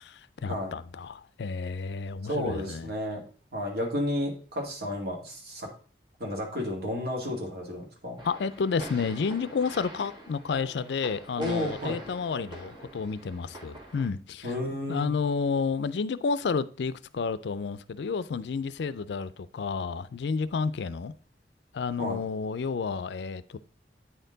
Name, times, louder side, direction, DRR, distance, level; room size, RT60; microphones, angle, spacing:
voice 1, 0.0-2.9 8.2-14.5 14.9-21.1 21.7-23.6, left 5 dB, 70° left, 0.4 m, -31 dB
voice 2, 2.2-3.3 3.5-5.7 6.2-8.2 11.4-12.0 14.4-15.1 22.0-22.2, left 1 dB, 60° right, 2.2 m, -32 dB
sound 1, 8.2-14.1, right 1 dB, 25° right, 1.8 m, -44 dB
8.9 x 4.4 x 3.9 m
head